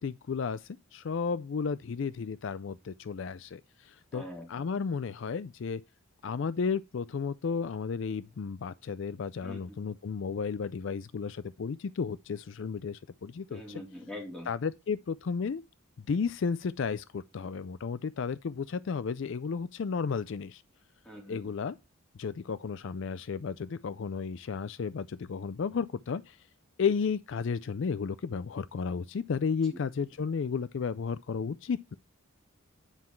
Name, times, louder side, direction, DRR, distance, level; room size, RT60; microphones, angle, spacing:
voice 1, 0.0-5.8 6.2-13.8 14.5-15.6 16.1-20.6 21.3-21.8 22.1-26.4 26.8-32.0, left 5 dB, 55° left, 0.4 m, -33 dB
voice 2, 4.1-4.7 9.4-9.8 13.5-14.5 21.0-21.5 29.7-29.8, left 1 dB, 5° left, 3.2 m, -43 dB
9.8 x 5.7 x 4.5 m
head